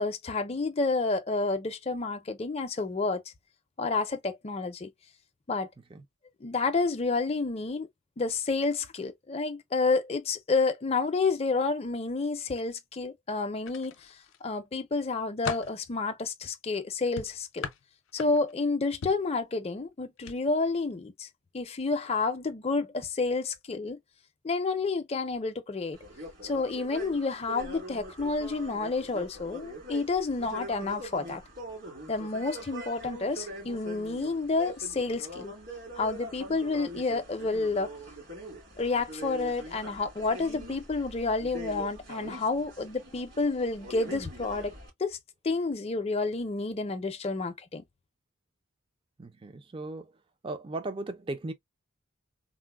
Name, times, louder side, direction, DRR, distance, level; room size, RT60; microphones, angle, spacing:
voice 1, 0.0-3.2 3.8-4.9 5.5-5.7 6.4-7.9 8.2-14.1 14.4-17.7 18.1-21.3 21.5-24.0 24.4-26.0 26.4-31.4 32.1-35.5 36.0-37.9 38.8-44.7 45.0-45.2 45.4-47.8, left 3 dB, 30° left, 0.5 m, -30 dB
sound 1, 13.6-14.4 14.9-15.8 17.2-18.6 19.0-19.3 20.2-20.4 20.7-20.9, left 5 dB, 80° left, 0.5 m, -38 dB
sound 2, 25.9-44.9, right 1 dB, 60° right, 2.2 m, -43 dB
voice 2, 49.2-50.1 50.4-51.5, right 2 dB, 25° right, 0.4 m, -37 dB
3.7 x 2.0 x 2.2 m
head